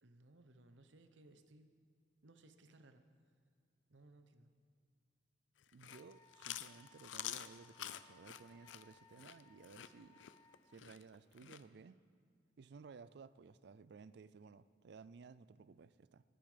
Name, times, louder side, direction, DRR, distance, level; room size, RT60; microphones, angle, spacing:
voice 1, 0.0-1.7 2.2-3.0 3.9-4.5 11.7-11.9, right 2 dB, 90° right, 8 dB, 1.0 m, -63 dB
Chewing mastication, 5.6-11.6, left 11 dB, 80° left, 0.5 m, -48 dB
voice 2, 5.7-10.2 10.7-12.0 12.6-16.2, right 5 dB, 65° right, 16 dB, 0.4 m, -57 dB
Wind instrument woodwind instrument, 5.9-10.8, left 3 dB, 20° left, 0.4 m, -67 dB
19.0 x 8.8 x 5.1 m, 2.2 s
head